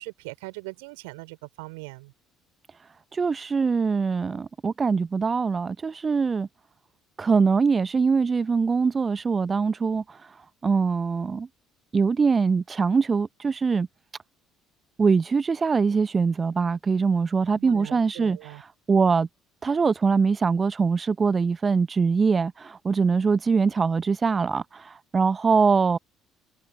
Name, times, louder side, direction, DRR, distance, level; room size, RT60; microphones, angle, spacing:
voice 1, 0.0-2.1 17.5-18.6, right 28 dB, 65° right, 4.3 m, -40 dB
voice 2, 3.1-6.5 7.2-10.2 10.6-11.5 11.9-13.9 15.0-19.3 19.6-26.0, right 5 dB, 30° right, 0.6 m, -23 dB
figure-of-eight pair, 55°, 0 cm